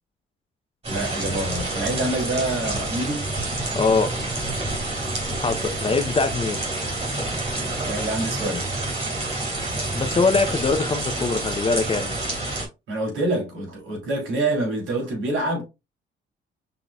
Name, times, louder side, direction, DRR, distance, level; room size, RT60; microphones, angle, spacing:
sound 1, 0.8-12.6, right 2 dB, 30° right, 3.0 m, -28 dB
voice 1, 0.9-3.3 5.0-5.2 5.6-5.8 7.8-8.8 12.9-15.6, right 2 dB, 80° right, 3.0 m, -27 dB
voice 2, 3.7-4.1 5.4-6.6 9.9-12.2, left 4 dB, 30° left, 0.7 m, -22 dB
5.6 x 3.9 x 2.3 m
cardioid pair, 90°, 20 cm